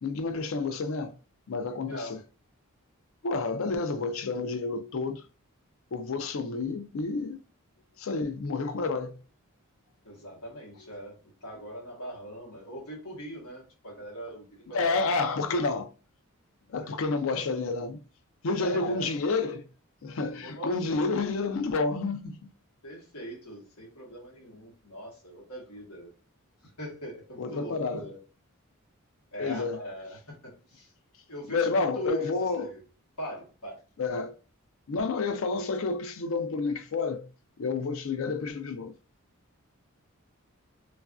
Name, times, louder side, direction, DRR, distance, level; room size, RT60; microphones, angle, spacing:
voice 1, 0.0-1.1 1.5-2.2 3.2-5.3 5.9-7.4 8.0-9.2 14.7-15.9 16.7-18.0 18.4-19.7 20.0-22.5 27.4-28.1 29.4-29.8 31.5-32.7 34.0-34.4 34.9-37.3 37.6-38.9, left 3 dB, 65° left, 0.4 m, -30 dB
voice 2, 1.9-2.2 10.0-15.0 15.5-15.6 16.7-16.9 18.6-19.1 20.4-21.1 22.8-26.1 26.6-28.2 29.3-30.9 31.3-32.8 33.2-33.8, right 1 dB, 90° left, 1.2 m, -40 dB
3.1 x 2.4 x 2.3 m
head